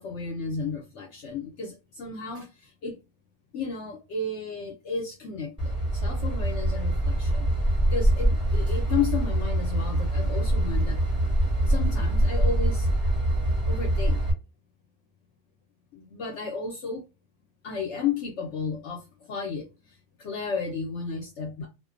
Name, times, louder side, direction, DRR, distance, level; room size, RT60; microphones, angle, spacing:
voice 1, 0.0-2.5 2.8-3.0 3.5-7.5 7.9-11.0 11.7-12.9 13.7-14.2 15.9-17.0 17.6-19.0 19.3-19.7 20.2-21.7, left 5 dB, 60° left, 0.8 m, -33 dB
Train / Engine, 5.6-14.3, right 1 dB, 5° right, 1.0 m, -24 dB
2.5 x 2.1 x 2.4 m
omnidirectional pair, 1.5 m